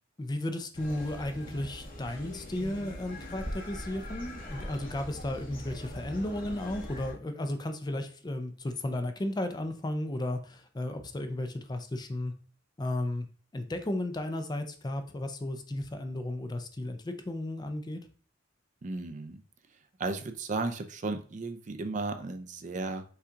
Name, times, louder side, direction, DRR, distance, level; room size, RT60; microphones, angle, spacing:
voice 1, 0.2-12.3 12.8-13.3 13.5-18.0, left 1 dB, 20° left, 7 dB, 0.4 m, -34 dB
sound 1, 0.7-7.1, left 1 dB, 45° left, 1.3 m, -41 dB
voice 2, 18.8-19.4 20.0-23.0, right 3 dB, 40° right, 8 dB, 0.4 m, -34 dB
5.5 x 2.3 x 3.8 m, 0.40 s
head